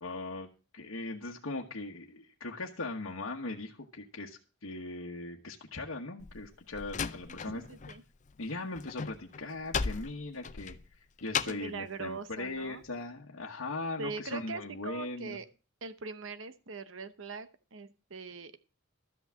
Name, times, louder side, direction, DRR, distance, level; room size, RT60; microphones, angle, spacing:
voice 1, 0.0-7.6 8.4-15.4, left 2 dB, 75° left, -1 dB, 1.2 m, -39 dB
Slam, 6.2-8.0 8.3-11.8, left 6 dB, 35° left, 0.5 m, -36 dB
voice 2, 7.3-8.0 11.4-12.8 14.0-15.5 15.8-18.6, right 4 dB, 65° right, 12 dB, 0.9 m, -42 dB
13.0 x 5.9 x 7.5 m, 0.34 s
head